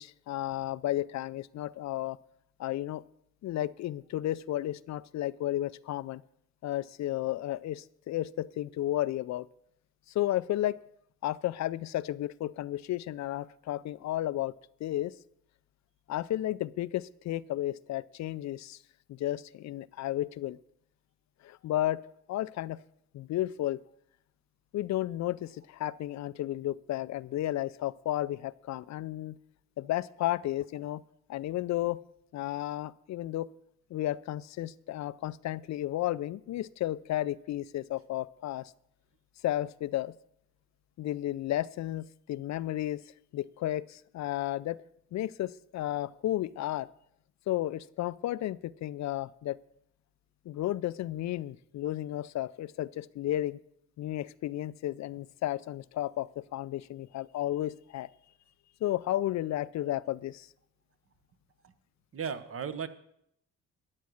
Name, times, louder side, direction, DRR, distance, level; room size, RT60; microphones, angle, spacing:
voice 1, 0.0-2.2 2.6-3.0 3.4-6.2 6.6-9.5 10.1-10.8 11.2-14.5 14.8-15.1 16.1-18.8 19.1-20.6 21.4-22.0 22.3-22.8 23.1-23.8 24.7-29.4 29.8-31.0 31.3-32.0 32.3-33.5 33.9-38.7 39.4-40.1 41.0-43.0 43.3-44.8 45.1-46.9 47.5-49.6 50.5-53.6 54.0-58.1 58.8-60.5, left 14 dB, 65° left, 17 dB, 0.5 m, -33 dB
voice 2, 62.1-62.9, right 7 dB, 45° right, 11 dB, 1.1 m, -35 dB
13.0 x 8.3 x 6.3 m, 0.74 s
cardioid pair, 90°, 30 cm